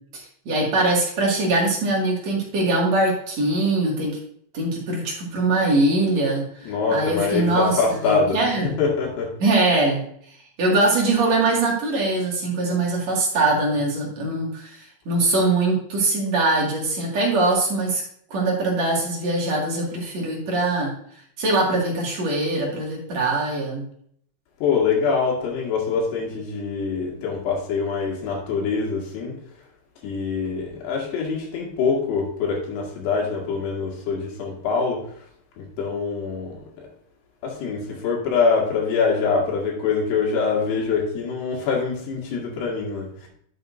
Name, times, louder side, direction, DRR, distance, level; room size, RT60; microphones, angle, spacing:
voice 1, 0.1-4.1 4.5-7.7 8.1-8.8 9.4-10.0 10.6-18.0 18.3-20.9 21.4-23.8, right 2 dB, 45° right, -3 dB, 3.1 m, -22 dB
voice 2, 6.6-9.3 24.6-29.3 30.0-35.1 35.6-36.9 37.4-43.3, left 5 dB, 90° left, -2 dB, 4.2 m, -24 dB
11.0 x 7.2 x 2.7 m, 0.65 s
omnidirectional pair, 4.6 m